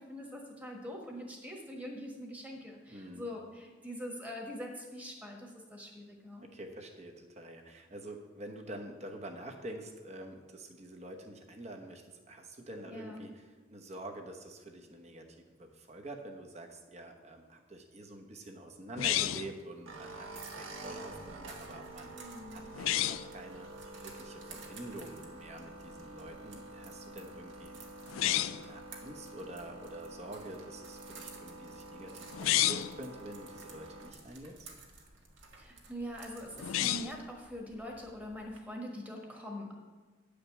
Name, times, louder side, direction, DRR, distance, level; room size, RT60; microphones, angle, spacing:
voice 1, 0.0-6.5 12.9-13.3 22.1-22.7 35.5-39.8, equal, 10° right, 1 dB, 1.4 m, -43 dB
voice 2, 2.9-3.2 6.4-13.3 13.7-23.7 24.0-27.9 28.2-34.7, right 1 dB, 35° right, 4 dB, 1.0 m, -47 dB
sound 1, 19.0-19.6 22.7-23.3 28.1-28.7 32.3-33.0 36.6-37.2, left 13 dB, 85° left, 0.3 m, -30 dB
sound 2, 19.8-34.1, right 2 dB, 90° right, 1.5 m, -48 dB
sound 3, 20.3-38.6, right 4 dB, 65° right, 1.6 m, -55 dB
9.9 x 5.1 x 7.2 m, 1.3 s
head